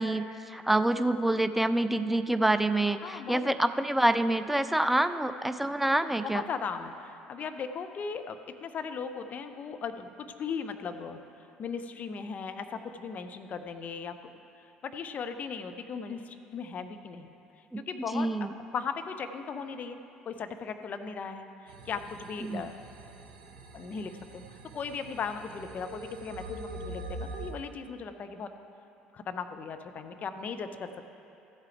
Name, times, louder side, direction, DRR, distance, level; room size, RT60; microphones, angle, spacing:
voice 1, 0.0-6.4 17.7-17.8 18.1-18.5 22.4-22.6, right 1 dB, 5° right, 11 dB, 0.4 m, -27 dB
voice 2, 3.0-3.5 6.2-11.2 11.6-14.1 14.8-17.3 17.8-20.0 20.3-22.8 23.7-24.4 24.7-28.5 29.1-31.0, left 5 dB, 40° left, 8 dB, 0.6 m, -37 dB
sound 1, 21.7-27.5, right 2 dB, 70° right, 0.8 m, -44 dB
14.5 x 8.2 x 3.3 m, 2.7 s
figure-of-eight pair, 60°, 4 cm